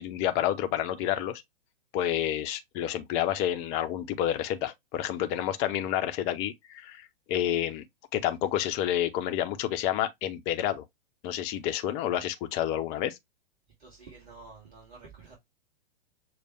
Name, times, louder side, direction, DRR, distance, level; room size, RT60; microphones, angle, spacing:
voice 1, 0.0-1.4 1.9-7.8 8.1-10.8 11.2-13.2, left 11 dB, 20° left, 0.5 m, -29 dB
voice 2, 13.8-15.3, right 4 dB, 25° right, 2.2 m, -49 dB
6.5 x 2.3 x 3.3 m
figure-of-eight pair, 110°, 31 cm